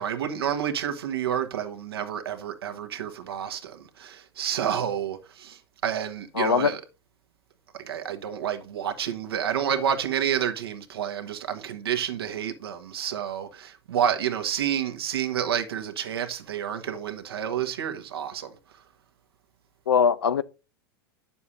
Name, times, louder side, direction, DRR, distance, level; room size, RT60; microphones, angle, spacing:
voice 1, 0.0-6.8 7.7-18.5, right 9 dB, 80° right, 1.3 m, -29 dB
voice 2, 6.4-6.7 19.9-20.4, left 6 dB, 85° left, 0.6 m, -21 dB
9.6 x 6.9 x 2.6 m
hypercardioid pair, 95°, 13 cm